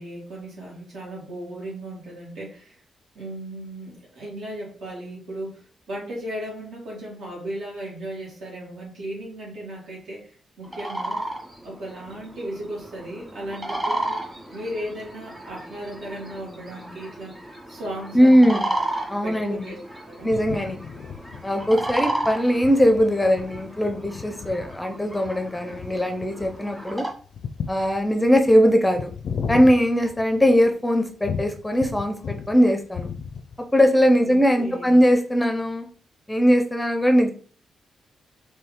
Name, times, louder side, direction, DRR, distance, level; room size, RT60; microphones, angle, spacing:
voice 1, 0.0-2.8 3.1-5.6 5.9-10.3 10.6-11.3 11.6-14.2 14.5-17.4 17.7-18.7 19.1-19.8 20.1-20.3 34.2-35.0, right 1 dB, 75° right, -4 dB, 2.3 m, -36 dB
sound 1, 10.6-27.1, right 1 dB, 15° right, 1.2 m, -34 dB
voice 2, 18.1-18.6 19.1-19.7 20.2-20.8 21.4-27.1 27.7-29.1 29.5-33.1 33.7-35.9 36.3-37.3, equal, 10° left, 5 dB, 0.5 m, -20 dB
sound 2, 20.3-30.7 31.2-32.6 32.8-33.7, left 6 dB, 70° left, 0.4 m, -35 dB
4.4 x 3.1 x 3.6 m, 0.43 s
wide cardioid pair, 130°, 0 cm